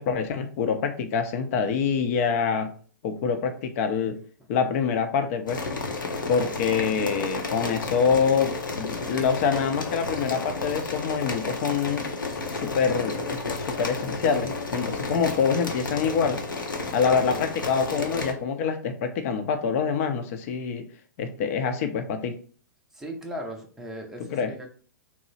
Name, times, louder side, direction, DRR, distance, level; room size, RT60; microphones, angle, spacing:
voice 1, 0.0-2.7 3.0-4.2 4.5-5.6 6.3-12.0 12.5-16.4 16.9-20.8 21.2-22.4 24.3-24.5, left 6 dB, 50° left, 7 dB, 0.6 m, -25 dB
sound 1, 5.5-18.3, left 3 dB, 85° left, 0.7 m, -32 dB
voice 2, 22.9-24.7, equal, 5° right, 1 dB, 0.6 m, -37 dB
2.9 x 2.0 x 4.0 m, 0.43 s
hypercardioid pair, 120°, 10 cm